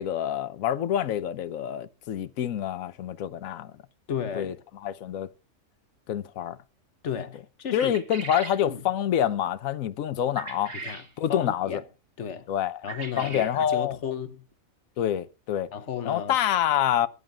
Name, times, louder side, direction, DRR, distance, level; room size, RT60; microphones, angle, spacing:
voice 1, 0.0-3.7 4.3-4.5 4.8-5.3 6.1-6.6 7.7-10.7 11.2-11.8 12.5-12.9 13.2-14.0 15.0-15.7 16.0-17.1, left 10 dB, 75° left, 1.2 m, -27 dB
voice 2, 4.1-4.6 7.0-7.9 8.7-8.8 10.7-11.0 11.3-11.8 12.2-12.5 12.8-14.4 15.7-16.4, left 8 dB, 60° left, 1.3 m, -34 dB
sound 1, 7.8-8.6 10.4-11.1 12.9-13.5, right 4 dB, 45° right, 1.9 m, -38 dB
20.5 x 11.0 x 2.4 m
omnidirectional pair, 1.4 m